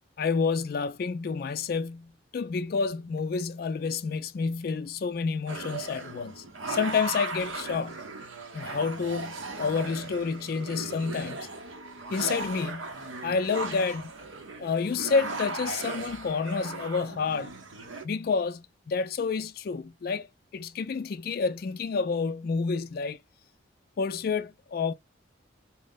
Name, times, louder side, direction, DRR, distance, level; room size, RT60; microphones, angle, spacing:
voice 1, 0.2-8.0 8.5-11.5 12.1-12.9 13.2-14.1 14.6-17.5 18.0-20.3 20.5-23.2 24.0-24.9, left 5 dB, 50° left, 0.3 m, -29 dB
sound 1, 5.5-18.0, right 3 dB, 80° right, 0.8 m, -37 dB
4.3 x 2.0 x 3.6 m
head